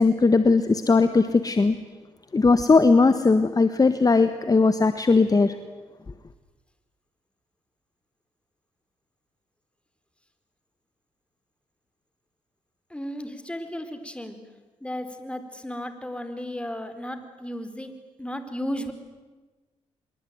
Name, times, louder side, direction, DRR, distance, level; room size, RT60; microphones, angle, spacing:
voice 1, 0.0-1.8 2.3-5.6, left 4 dB, 30° left, 10 dB, 1.5 m, -19 dB
voice 2, 12.9-14.4 14.8-18.9, equal, 10° left, 9 dB, 4.3 m, -34 dB
25.5 x 22.5 x 9.5 m, 1.2 s
supercardioid pair, 60°, 12 cm